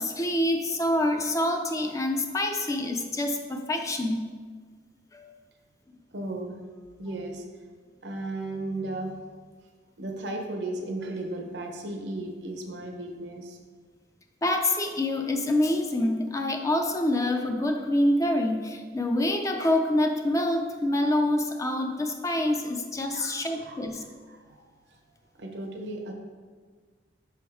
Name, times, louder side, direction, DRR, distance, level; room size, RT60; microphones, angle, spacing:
voice 1, 0.0-4.2 5.1-5.4 14.4-24.0, left 1 dB, 20° left, 4 dB, 0.4 m, -26 dB
voice 2, 6.1-6.6 7.0-7.4 8.0-9.3 10.0-13.6 23.1-24.6 24.9-25.0 25.3-26.1, right 2 dB, 80° right, 2 dB, 0.8 m, -35 dB
6.0 x 3.5 x 4.6 m, 1.6 s
head